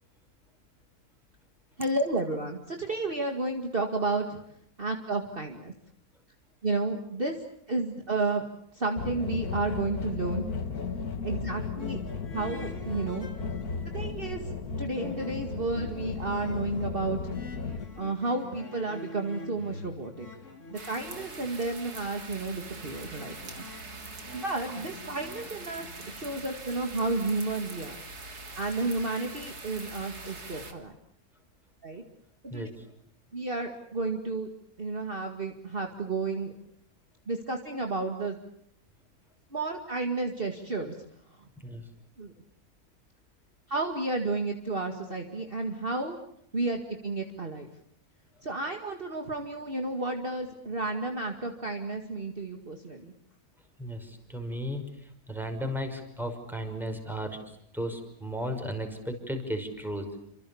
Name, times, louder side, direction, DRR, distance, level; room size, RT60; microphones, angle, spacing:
voice 1, 1.8-4.4 4.8-5.7 6.6-7.4 7.7-8.4 8.7-10.4 11.2-12.0 12.3-13.3 13.9-14.4 14.8-17.2 18.0-20.3 20.7-23.6 24.3-28.0 28.5-30.9 31.8-32.0 32.4-32.7 33.3-34.5 34.8-36.5 37.3-38.4 39.5-41.0 42.2-42.3 43.7-46.2 46.5-47.7 48.4-53.1, right 3 dB, 35° right, 4 dB, 2.3 m, -32 dB
sound 1, 9.0-17.8, left 5 dB, 75° left, 2.5 m, -35 dB
sound 2, 11.8-14.0 14.4-26.4, left 2 dB, 50° left, 2.9 m, -46 dB
sound 3, 20.8-30.7, right 3 dB, 85° right, 3.5 m, -43 dB
voice 2, 53.8-54.8 55.3-57.4 57.7-60.2, equal, ahead, 5 dB, 5.5 m, -34 dB
29.5 x 26.5 x 7.1 m, 0.74 s
omnidirectional pair, 1.6 m